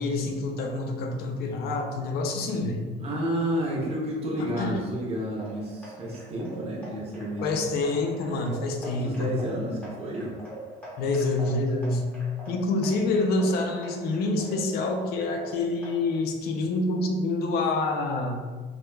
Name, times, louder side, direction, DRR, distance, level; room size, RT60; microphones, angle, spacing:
voice 1, 0.0-2.8 4.6-4.8 7.4-9.3 11.0-12.1 12.5-18.4, left 2 dB, 50° left, 3 dB, 0.4 m, -27 dB
voice 2, 2.9-7.6 8.8-10.3, right 1 dB, 30° right, -3 dB, 0.5 m, -31 dB
sound 1, 5.3-16.2, right 1 dB, 5° left, 0.6 m, -44 dB
2.2 x 2.1 x 3.0 m, 1.4 s
cardioid pair, 170°, 20 cm